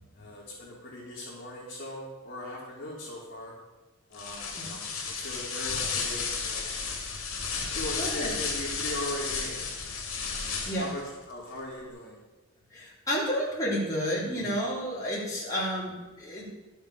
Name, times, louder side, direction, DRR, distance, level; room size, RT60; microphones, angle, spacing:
voice 1, 0.1-3.5 4.1-6.6 7.7-9.6 10.3-11.0 11.3-12.2 14.4-14.5, left 1 dB, 40° left, -8 dB, 3.1 m, -39 dB
sound 1, 4.1-11.0, left 5 dB, 80° left, 2.5 m, -33 dB
voice 2, 8.0-8.3 10.3-10.9 12.7-16.5, equal, 15° left, -7 dB, 3.4 m, -31 dB
12.5 x 7.3 x 6.5 m, 1.2 s
head